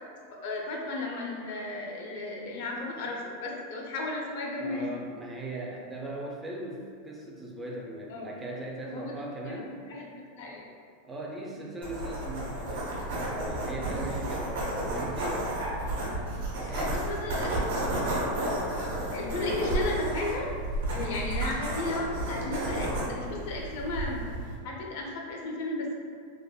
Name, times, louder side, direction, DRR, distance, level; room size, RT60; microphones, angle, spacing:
voice 1, 0.4-4.9 8.1-8.3 8.9-10.1 10.4-10.7 16.6-17.7 18.7-20.5 20.9-24.2 24.6-26.0, left 2 dB, 60° left, -2 dB, 0.5 m, -34 dB
voice 2, 4.6-9.8 11.0-15.5 16.5-17.1, right 1 dB, 10° right, -2 dB, 0.3 m, -39 dB
sound 1, 11.8-24.5, right 1 dB, 80° right, 0.9 m, -32 dB
3.4 x 2.0 x 2.3 m, 2.1 s
supercardioid pair, 145°, 0 cm